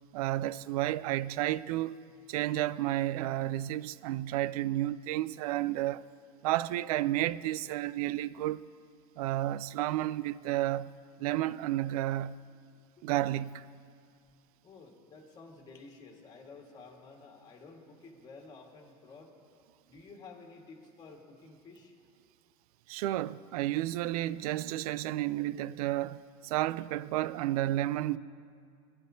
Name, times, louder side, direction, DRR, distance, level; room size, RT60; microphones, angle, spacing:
voice 1, 0.1-2.0 2.3-6.0 6.4-8.7 9.2-10.9 11.2-12.4 13.0-13.6 22.9-26.2 26.4-28.2, right 14 dB, 80° right, 0.4 m, -31 dB
voice 2, 14.6-19.3 19.9-21.9, left 4 dB, 20° left, 1.6 m, -52 dB
24.5 x 10.5 x 2.7 m
supercardioid pair, 150°, 19 cm